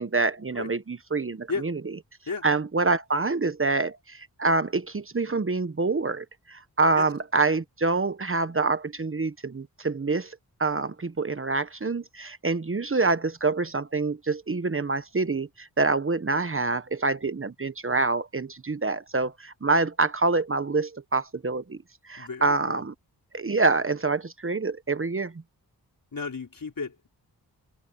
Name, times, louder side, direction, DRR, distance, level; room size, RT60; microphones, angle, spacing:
voice 1, 0.0-1.7 2.4-21.8 22.1-22.9 23.3-25.3, right 3 dB, 30° right, 1.2 m, -26 dB
voice 2, 22.2-22.8 26.1-27.1, left 4 dB, 55° left, 5.1 m, -34 dB
open air
cardioid pair, 45°, 41 cm